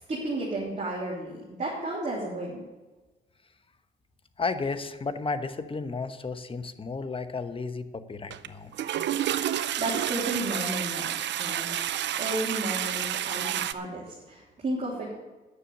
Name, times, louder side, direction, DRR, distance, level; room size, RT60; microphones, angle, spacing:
voice 1, 0.1-2.6 9.4-11.8 12.2-15.1, right 2 dB, 40° right, -5 dB, 3.3 m, -33 dB
voice 2, 4.4-8.7, left 4 dB, 25° left, 9 dB, 1.0 m, -33 dB
Toilet flush, 8.3-8.5 8.7-13.7, right 11 dB, 65° right, 0.6 m, -30 dB
9.9 x 7.0 x 9.2 m, 1.2 s
cardioid pair, 90°, 20 cm